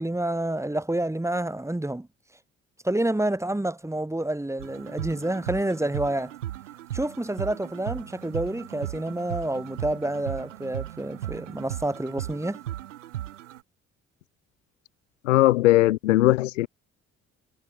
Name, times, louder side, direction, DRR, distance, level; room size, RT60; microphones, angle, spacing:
voice 1, 0.0-2.1 2.8-6.3 6.9-12.6, right 1 dB, 10° right, 2.0 m, -28 dB
sound 1, 4.6-13.6, right 13 dB, 85° right, 4.3 m, -37 dB
voice 2, 15.2-16.7, left 16 dB, 85° left, 0.6 m, -19 dB
figure-of-eight pair, 45°, 37 cm